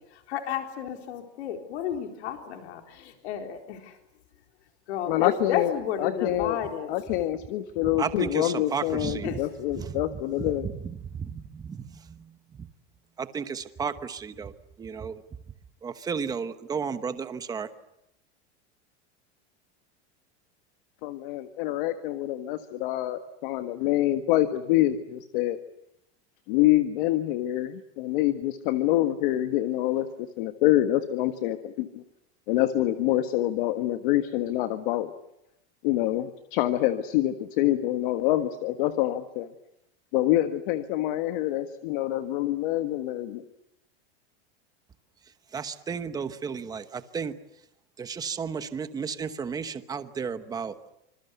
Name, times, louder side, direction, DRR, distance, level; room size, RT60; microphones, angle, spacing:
voice 1, 0.3-3.9 4.9-6.9 9.2-9.4, left 9 dB, 80° left, 4 dB, 4.0 m, -32 dB
voice 2, 5.1-6.6 6.9-10.7 21.0-25.6 26.5-30.1 30.4-32.0 32.5-35.1 35.8-39.5 40.1-43.4, left 14 dB, 50° left, 9 dB, 1.6 m, -26 dB
voice 3, 7.8-9.4 9.7-12.7 13.2-14.5 14.8-15.2 15.8-17.7 45.5-47.3 48.0-50.7, right 6 dB, 10° right, 10 dB, 1.1 m, -33 dB
26.5 x 26.5 x 8.1 m, 0.83 s
supercardioid pair, 175°, 33 cm